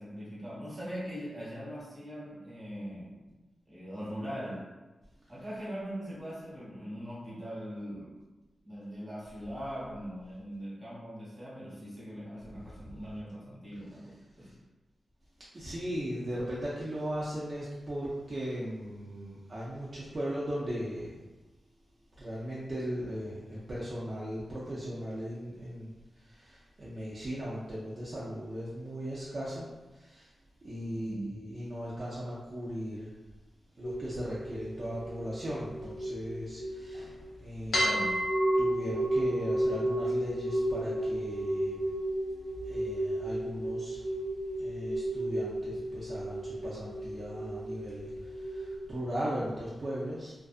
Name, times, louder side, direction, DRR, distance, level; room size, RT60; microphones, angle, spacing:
voice 1, 0.0-3.3 3.7-4.7 5.3-8.2 8.6-14.5 30.9-31.3 37.8-38.2, equal, 15° right, -8 dB, 1.0 m, -41 dB
voice 2, 15.5-21.2 22.2-30.3 30.6-33.1 33.8-37.1 37.4-37.9 38.6-44.0 44.6-50.3, equal, 40° right, -8 dB, 0.4 m, -38 dB
sound 1, 33.8-37.2 37.7-48.8, right 1 dB, 80° left, 0.6 m, -33 dB
2.5 x 2.4 x 2.4 m, 1.1 s
wide cardioid pair, 140°, 0 cm